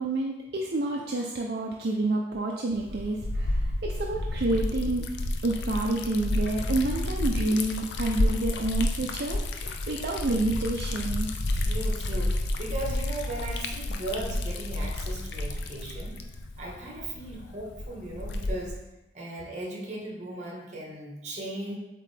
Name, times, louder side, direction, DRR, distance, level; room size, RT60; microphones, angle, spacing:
voice 1, 0.0-5.1 5.4-11.3, right 2 dB, 60° right, -1 dB, 0.5 m, -29 dB
Liquid, 2.7-18.8, left 1 dB, 75° left, 0.5 m, -31 dB
voice 2, 11.5-16.2 16.6-18.8 19.1-21.8, right 1 dB, 40° right, -1 dB, 1.4 m, -37 dB
7.6 x 3.8 x 3.3 m, 0.98 s
head